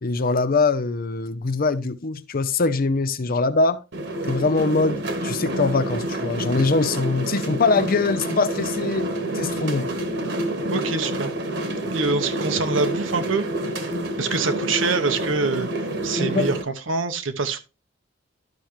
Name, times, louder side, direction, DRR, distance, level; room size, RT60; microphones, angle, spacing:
voice 1, 0.0-3.8 4.3-9.1 9.3-9.9 16.2-16.5, left 3 dB, 50° left, 0.6 m, -22 dB
sound 1, 3.9-16.6, right 1 dB, 65° right, 1.4 m, -28 dB
voice 2, 10.7-11.3 11.9-13.5 14.2-15.7 16.0-17.6, right 4 dB, 90° right, 1.0 m, -25 dB
12.0 x 5.8 x 3.2 m
head